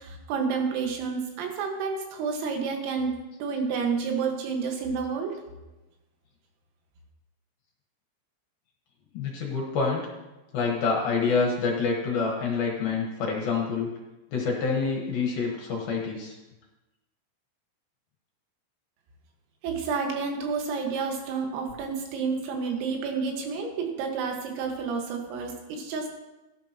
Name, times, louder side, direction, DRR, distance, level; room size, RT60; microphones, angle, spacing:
voice 1, 0.0-5.4 19.6-26.1, right 5 dB, 90° right, 2 dB, 4.3 m, -30 dB
voice 2, 9.1-10.1 10.5-13.9 14.3-16.4, left 4 dB, 65° left, -2 dB, 2.6 m, -27 dB
17.5 x 11.0 x 3.0 m, 1.1 s
omnidirectional pair, 5.8 m